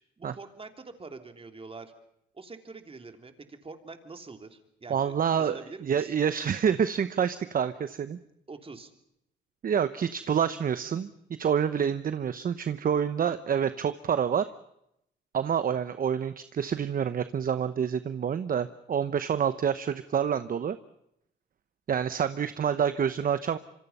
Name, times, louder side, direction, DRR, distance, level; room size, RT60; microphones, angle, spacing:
voice 1, 0.2-1.9 2.3-6.1 8.2-8.9, right 3 dB, 30° right, 6 dB, 3.1 m, -45 dB
voice 2, 4.9-8.2 9.6-14.5 15.3-20.8 21.9-23.6, right 8 dB, 45° right, 12 dB, 0.9 m, -27 dB
26.5 x 24.5 x 5.5 m, 0.78 s
cardioid pair, 90°, 20 cm